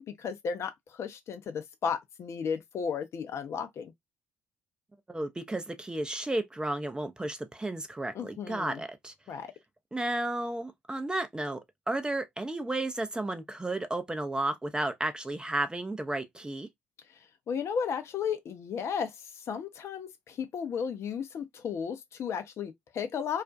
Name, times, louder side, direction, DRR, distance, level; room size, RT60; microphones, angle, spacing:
voice 1, 0.0-3.9 8.1-8.8 9.3-9.5 17.5-23.4, left 6 dB, 50° left, 0.5 m, -34 dB
voice 2, 5.1-9.1 9.9-11.6 11.9-16.7, right 2 dB, 15° right, 0.5 m, -33 dB
2.4 x 2.1 x 2.4 m
hypercardioid pair, 50°, 6 cm